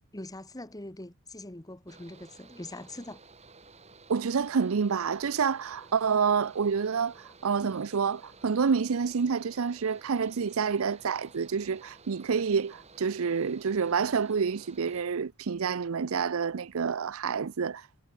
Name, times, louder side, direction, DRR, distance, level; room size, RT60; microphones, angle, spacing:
voice 1, 0.1-3.2, left 1 dB, 15° left, 1.7 m, -42 dB
Mechanical fan, 1.9-15.0, right 3 dB, 30° right, 6.6 m, -54 dB
voice 2, 4.1-17.9, right 6 dB, 65° right, 0.5 m, -28 dB
head